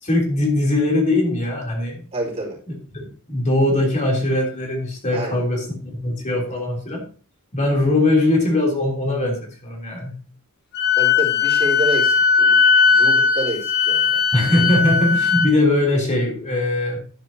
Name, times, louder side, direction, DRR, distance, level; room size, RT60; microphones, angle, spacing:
voice 1, 0.0-2.0 2.9-7.0 7.5-10.1 14.3-17.0, left 2 dB, 35° left, -1 dB, 3.3 m, -21 dB
voice 2, 2.1-2.6 5.1-5.4 6.5-6.6 11.0-14.2, right 2 dB, 30° right, -3 dB, 4.5 m, -28 dB
Wind instrument woodwind instrument, 10.7-15.5, left 5 dB, 50° left, 1.5 m, -18 dB
11.5 x 9.5 x 2.8 m, 0.39 s
head